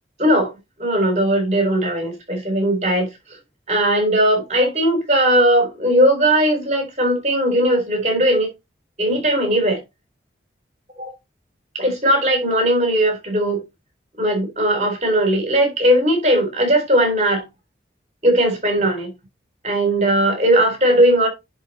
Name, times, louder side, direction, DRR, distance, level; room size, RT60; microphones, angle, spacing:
voice 1, 0.2-0.5 0.8-3.1 3.7-8.5 9.0-9.8 11.0-11.1 11.7-13.6 14.2-17.4 18.2-19.1 19.6-21.3, right 1 dB, 40° right, 3.7 m, -18 dB
10.5 x 4.4 x 4.2 m
head